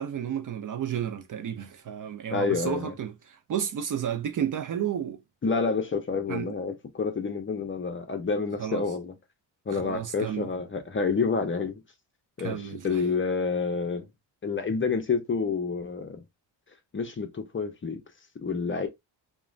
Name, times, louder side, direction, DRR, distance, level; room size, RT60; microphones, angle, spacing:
voice 1, 0.0-5.2 6.3-6.5 8.6-8.8 9.7-10.5 12.4-13.0, right 9 dB, 45° right, 0.4 m, -32 dB
voice 2, 2.3-2.9 5.4-9.1 9.7-11.8 12.4-14.1 14.4-16.2 16.9-18.0 18.4-18.9, left 4 dB, 25° left, 0.6 m, -28 dB
2.9 x 2.2 x 2.5 m
cardioid pair, 90°, 46 cm